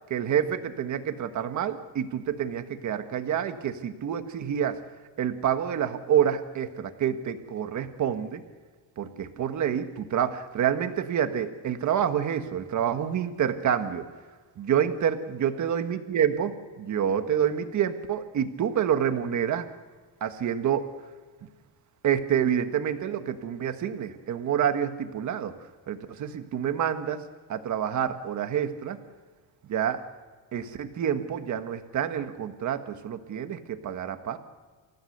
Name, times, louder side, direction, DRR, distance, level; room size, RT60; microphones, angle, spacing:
voice 1, 0.1-4.8 5.2-8.4 9.0-14.0 14.7-19.6 20.2-20.9 22.0-25.5 25.9-27.2 27.5-29.0 29.7-30.0 30.5-34.4, right 9 dB, 40° right, 8 dB, 1.4 m, -28 dB
27.5 x 15.0 x 6.7 m, 1.5 s
cardioid pair, 175°, 47 cm